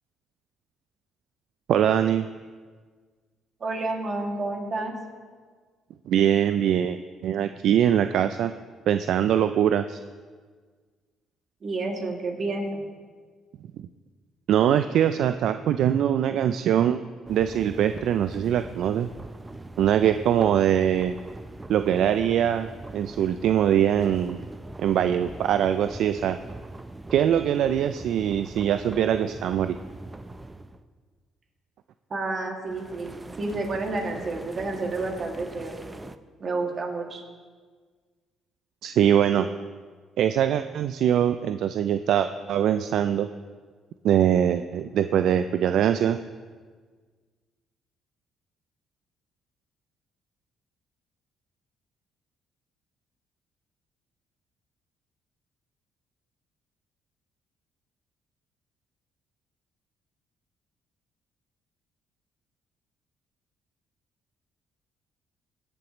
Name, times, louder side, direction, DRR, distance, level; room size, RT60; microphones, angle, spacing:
voice 1, 1.7-2.3 6.1-8.5 8.9-10.0 14.5-17.0 17.3-19.1 19.8-21.2 21.7-22.7 22.9-24.4 24.8-26.4 27.1-29.8 38.8-39.5 40.2-43.3 44.0-46.2, right 10 dB, 70° right, 10 dB, 0.3 m, -22 dB
voice 2, 3.6-4.9 11.6-12.8 32.1-35.9 36.4-37.2, right 3 dB, 50° right, 1 dB, 2.1 m, -30 dB
sound 1, 17.3-30.8 32.7-36.2, right 2 dB, 20° right, 0.6 m, -42 dB
17.0 x 7.8 x 3.0 m, 1.5 s
supercardioid pair, 70°, 0 cm